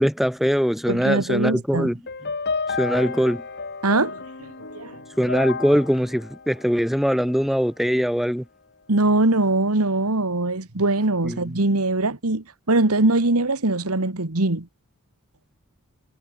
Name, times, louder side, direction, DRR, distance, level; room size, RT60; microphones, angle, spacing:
voice 1, 0.0-2.0 2.8-3.4 5.2-8.4 11.2-11.5, equal, ahead, 2.0 m, -22 dB
voice 2, 0.9-1.9 3.8-5.0 8.9-14.7, right 2 dB, 80° right, 2.0 m, -22 dB
sound 1, 2.1-7.4, left 4 dB, 50° left, 2.9 m, -32 dB
head